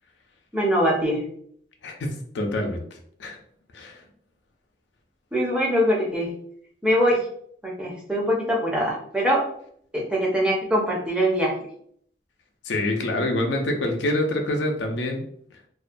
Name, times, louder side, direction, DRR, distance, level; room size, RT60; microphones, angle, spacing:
voice 1, 0.5-1.3 5.3-6.3 6.8-7.2 7.6-9.4 9.9-11.6, equal, 5° right, -3 dB, 0.5 m, -23 dB
voice 2, 1.8-2.8 3.2-3.4 3.7-4.0 12.7-15.2, left 1 dB, 75° left, 3 dB, 0.5 m, -26 dB
2.3 x 2.1 x 2.5 m, 0.63 s
head